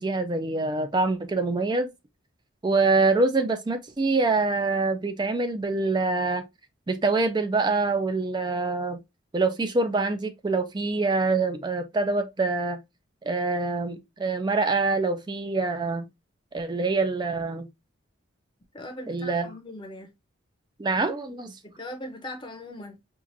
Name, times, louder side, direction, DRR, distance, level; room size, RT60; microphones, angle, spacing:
voice 1, 0.0-1.9 2.6-6.4 6.9-9.0 9.3-12.8 13.3-16.0 16.5-17.7 19.1-19.5 20.8-21.5, right 3 dB, 20° right, 0.3 m, -25 dB
voice 2, 18.7-20.1 21.7-23.0, left 1 dB, 20° left, 0.6 m, -39 dB
4.5 x 2.4 x 2.6 m
head